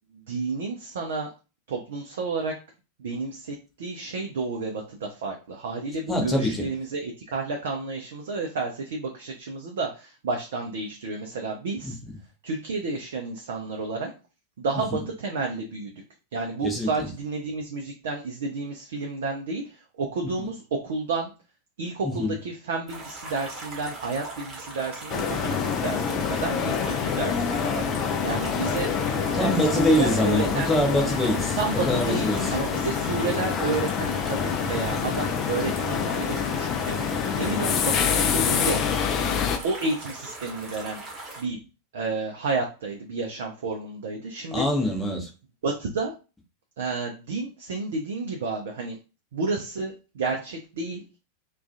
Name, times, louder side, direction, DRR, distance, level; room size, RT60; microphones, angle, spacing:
voice 1, 0.1-1.3 1.7-2.6 3.0-12.0 12.4-14.1 14.6-15.9 16.3-21.3 21.8-28.9 29.3-30.7 31.6-38.8 39.6-41.0 41.4-41.6 41.9-44.6 45.6-46.1 46.8-49.0 49.3-51.0, right 3 dB, 60° right, 0.4 m, -31 dB
voice 2, 6.1-6.7 11.8-11.9 14.9-15.0 16.6-17.1 20.4-20.5 22.0-22.3 29.3-32.5 34.9-35.0 44.5-45.3, left 1 dB, 10° left, 0.7 m, -25 dB
sound 1, 22.9-41.4, right 2 dB, 20° right, 1.0 m, -40 dB
sound 2, 25.1-39.6, left 7 dB, 35° left, 0.3 m, -26 dB
2.3 x 2.2 x 2.6 m
figure-of-eight pair, 90°, 0 cm